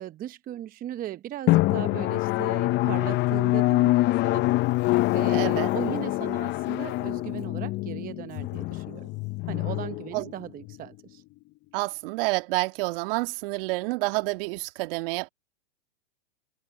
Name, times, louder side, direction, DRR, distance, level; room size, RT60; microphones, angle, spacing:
voice 1, 0.0-4.0 4.2-4.5 5.1-9.1 9.5-11.2, right 12 dB, 25° right, 0.9 m, -38 dB
Drum, 1.5-10.7, left 19 dB, 30° left, 0.8 m, -25 dB
voice 2, 5.3-5.7 10.1-10.3 11.7-15.3, right 25 dB, 50° right, 1.9 m, -28 dB
hypercardioid pair, 115°, 35 cm